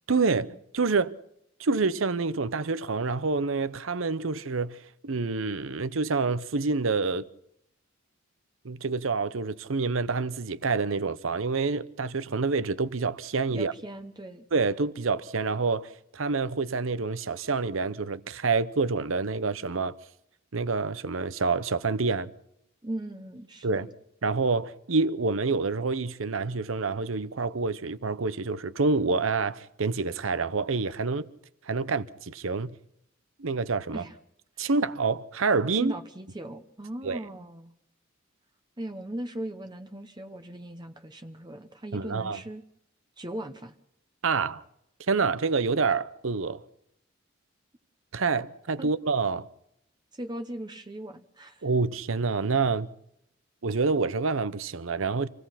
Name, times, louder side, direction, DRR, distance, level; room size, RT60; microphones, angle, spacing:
voice 1, 0.1-1.1 1.6-7.2 8.6-13.7 14.5-20.0 20.5-22.3 23.6-23.9 24.2-31.3 31.7-32.7 33.4-34.0 34.6-35.9 37.0-37.2 41.9-42.4 44.2-44.6 45.1-46.6 48.1-49.5 51.6-52.9 53.6-55.3, right 4 dB, 75° right, 0.8 m, -27 dB
voice 2, 13.5-14.4 22.8-23.9 33.9-34.2 35.8-37.7 38.8-42.6 43.2-43.7 48.8-48.9 50.1-51.7, right 1 dB, 20° right, 0.9 m, -38 dB
27.0 x 16.5 x 5.8 m
head